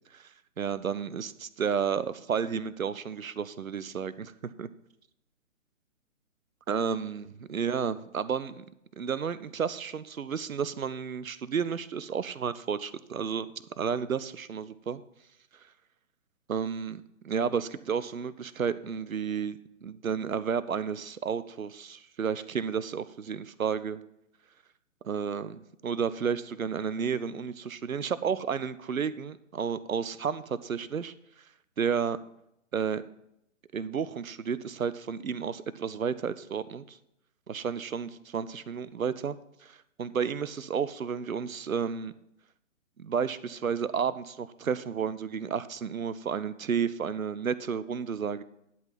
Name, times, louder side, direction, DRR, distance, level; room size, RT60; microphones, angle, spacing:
voice 1, 0.6-4.3 4.6-4.7 6.7-8.6 9.0-13.5 13.8-15.0 16.5-24.0 25.0-31.1 31.8-32.2 32.7-33.0 33.7-37.0 37.5-39.4 39.6-42.1 43.0-48.4, right 7 dB, 85° right, 16 dB, 0.6 m, -32 dB
11.0 x 4.0 x 7.2 m, 0.79 s
figure-of-eight pair, 140°, 40 cm